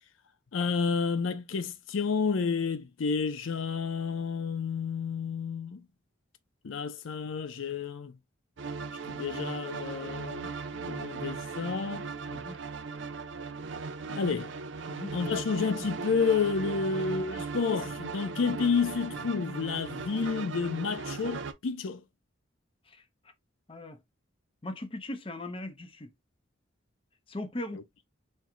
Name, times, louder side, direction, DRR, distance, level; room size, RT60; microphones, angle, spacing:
voice 1, 0.5-5.8 6.6-8.1 9.1-12.1 14.1-14.5 15.1-22.0 27.7-27.8, left 5 dB, 80° left, 0.5 m, -30 dB
sound 1, 8.6-21.5, right 4 dB, 65° right, 0.6 m, -38 dB
voice 2, 24.6-26.1 27.3-27.8, left 1 dB, 25° left, 0.7 m, -39 dB
4.5 x 2.2 x 3.7 m
head